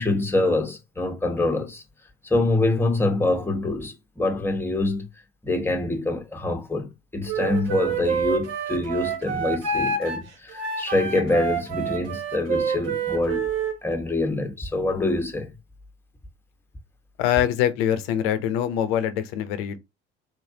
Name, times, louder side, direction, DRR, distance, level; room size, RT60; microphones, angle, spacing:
voice 1, 0.0-1.8 2.2-5.1 5.4-13.5 13.8-15.5, left 2 dB, 5° left, 1.1 m, -25 dB
Wind instrument woodwind instrument, 7.3-13.8, right 5 dB, 60° right, 1.5 m, -27 dB
voice 2, 17.2-19.8, left 10 dB, 75° left, 0.7 m, -24 dB
3.6 x 3.2 x 2.8 m
hypercardioid pair, 60°, 30 cm